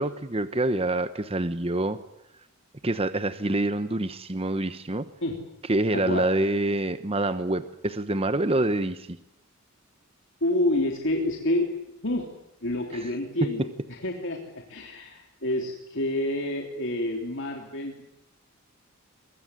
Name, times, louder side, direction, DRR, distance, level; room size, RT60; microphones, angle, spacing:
voice 1, 0.0-2.0 2.8-5.1 5.7-9.2, right 2 dB, 30° right, 11 dB, 1.0 m, -26 dB
voice 2, 5.9-6.2 10.4-11.7 12.0-12.3 12.6-18.0, left 1 dB, 60° left, 1 dB, 3.3 m, -28 dB
23.5 x 22.5 x 9.9 m, 0.84 s
head